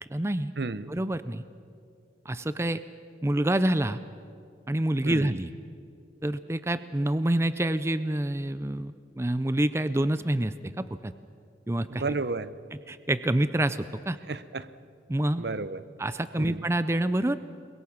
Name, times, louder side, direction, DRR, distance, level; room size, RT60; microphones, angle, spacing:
voice 1, 0.0-0.5 0.9-1.4 2.3-2.8 3.2-4.0 4.7-5.5 6.2-11.1 11.7-12.0 12.9-14.2 15.1-15.5 16.0-17.4, right 1 dB, 15° right, 13 dB, 0.5 m, -27 dB
voice 2, 0.6-0.9 5.0-5.4 11.9-12.5 14.3-14.7 15.4-15.8 16.4-16.6, right 3 dB, 60° right, 15 dB, 0.7 m, -32 dB
29.0 x 22.0 x 6.1 m, 2.4 s
head